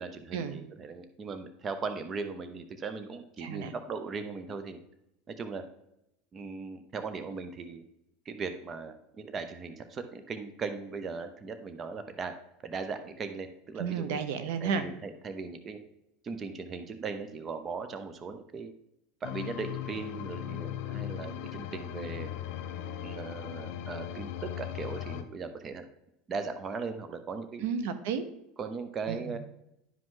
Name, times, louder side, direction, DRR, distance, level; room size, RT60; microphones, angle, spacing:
voice 1, 0.0-4.8 5.3-5.6 6.3-7.9 8.2-12.3 12.6-14.2 14.6-15.8 16.2-18.7 19.2-22.3 23.0-25.9 26.3-27.6 28.6-29.4, right 4 dB, 30° right, 8 dB, 0.8 m, -38 dB
voice 2, 3.4-3.7 13.8-14.9 27.6-28.2 29.1-29.4, right 6 dB, 75° right, 11 dB, 0.9 m, -32 dB
sound 1, 19.2-25.2, left 11 dB, 65° left, 0.9 m, -38 dB
11.0 x 5.2 x 3.8 m, 0.83 s
supercardioid pair, 130°, 0 cm